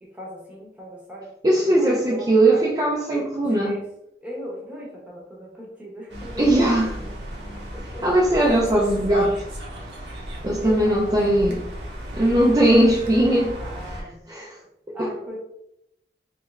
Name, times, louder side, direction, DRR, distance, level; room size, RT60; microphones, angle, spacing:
voice 1, 0.0-2.6 3.6-3.8 4.2-6.7 7.7-8.2 10.6-11.5 12.2-12.7 13.6-14.2 14.9-15.4, equal, 5° right, -4 dB, 0.8 m, -39 dB
voice 2, 1.4-3.7 6.4-7.0 8.0-9.3 10.4-11.6 12.1-13.5 13.9-14.5 15.0-15.1, right 1 dB, 20° right, -5 dB, 0.4 m, -19 dB
sound 1, 6.1-14.0, equal, 80° right, 0.8 m, -35 dB
3.2 x 2.4 x 3.1 m, 0.81 s
head